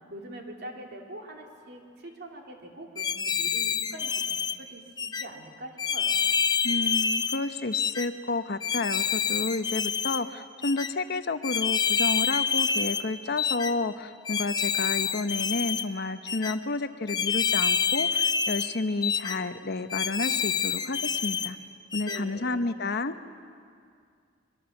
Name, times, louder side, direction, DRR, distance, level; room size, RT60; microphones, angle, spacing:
voice 1, 0.1-6.2 22.0-22.6, right 1 dB, 60° right, 1 dB, 3.0 m, -43 dB
sound 1, 3.0-4.6 5.0-5.2 5.8-7.4 7.7-8.1 8.6-10.2 10.6-10.9 11.4-13.0 13.4-13.7 14.3-15.9 16.3-16.5 17.1-18.7 19.0-19.4 19.9-21.5 21.9-22.2, left 6 dB, 20° left, 0.6 m, -27 dB
voice 2, 6.6-21.6 21.9-23.2, left 3 dB, 55° left, 10 dB, 0.9 m, -31 dB
23.5 x 23.0 x 7.1 m, 2.3 s
head